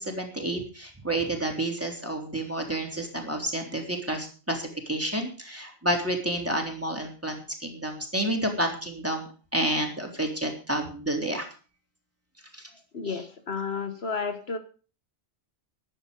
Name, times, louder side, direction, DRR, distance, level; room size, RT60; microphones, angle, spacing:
voice 1, 0.0-11.5 12.5-12.6 13.0-13.2, right 1 dB, 10° right, 2 dB, 3.5 m, -30 dB
voice 2, 12.9-14.6, left 5 dB, 60° left, 8 dB, 1.5 m, -31 dB
14.0 x 11.0 x 5.2 m, 0.37 s
omnidirectional pair, 1.2 m